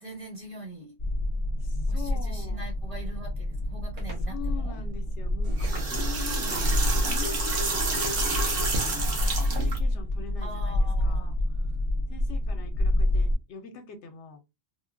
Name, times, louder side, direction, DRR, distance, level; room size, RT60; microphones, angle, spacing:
voice 1, 0.0-0.9 1.9-4.8 10.4-11.3, right 2 dB, 30° right, 1 dB, 1.0 m, -43 dB
sound 1, 1.0-13.3, left 1 dB, 30° left, 0.6 m, -28 dB
voice 2, 1.9-2.6 4.3-6.7 6.9-8.9 9.4-10.7 11.0-11.3 12.1-14.4, left 6 dB, 75° left, 7 dB, 0.9 m, -43 dB
sound 2, 4.0-4.3 5.6-6.2 7.3-7.5 8.0-8.8, right 2 dB, 70° right, 1.3 m, -46 dB
sound 3, 5.4-9.8, right 3 dB, 55° right, 1.0 m, -29 dB
3.2 x 2.1 x 2.4 m, 0.24 s
omnidirectional pair, 1.2 m